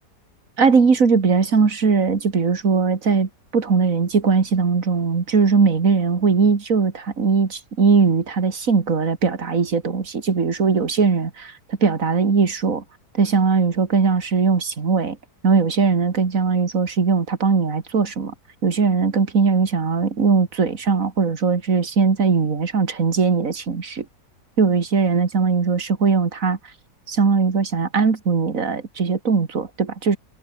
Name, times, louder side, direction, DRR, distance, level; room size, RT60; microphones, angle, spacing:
voice 1, 0.6-12.8 13.1-15.2 15.4-18.3 18.6-24.1 24.6-26.6 27.1-30.2, right 5 dB, 55° right, 2.5 m, -19 dB
omnidirectional pair, 1.8 m